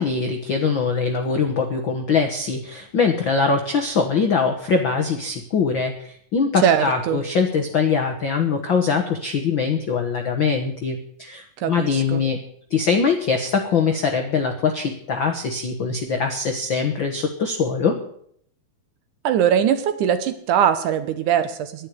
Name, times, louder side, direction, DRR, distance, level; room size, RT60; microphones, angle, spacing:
voice 1, 0.0-12.4 12.7-18.0, left 5 dB, 75° left, 5 dB, 1.1 m, -22 dB
voice 2, 6.6-7.2 11.6-12.2 19.2-21.9, right 9 dB, 70° right, 10 dB, 2.2 m, -21 dB
11.0 x 10.5 x 9.5 m, 0.67 s
omnidirectional pair, 4.1 m